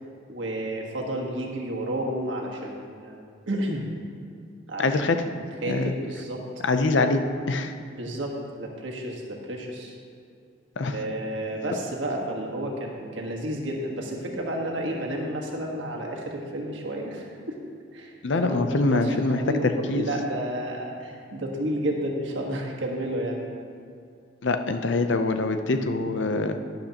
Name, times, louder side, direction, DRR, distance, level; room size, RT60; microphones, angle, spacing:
voice 1, 0.3-3.8 4.7-5.2 5.6-6.4 7.9-9.9 10.9-17.6 17.9-18.1 18.4-23.4, right 1 dB, 75° right, -1 dB, 1.5 m, -31 dB
voice 2, 4.8-5.2 5.7-5.9 6.6-7.7 10.8-11.0 18.2-20.1 24.4-26.6, left 3 dB, 70° left, 7 dB, 0.6 m, -24 dB
11.5 x 10.5 x 2.9 m, 2.3 s
head